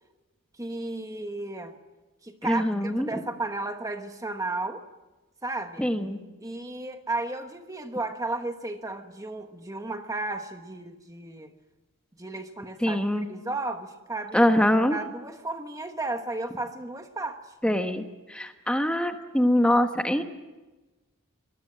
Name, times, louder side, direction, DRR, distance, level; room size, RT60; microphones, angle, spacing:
voice 1, 0.6-1.8 2.2-4.8 5.4-5.9 6.4-11.5 12.2-14.5 14.9-17.4, right 2 dB, 15° right, 6 dB, 1.2 m, -34 dB
voice 2, 2.4-3.2 5.8-6.2 12.8-13.2 14.3-15.0 17.6-20.2, left 1 dB, 5° left, 6 dB, 1.2 m, -24 dB
24.5 x 19.5 x 7.6 m, 1.1 s
head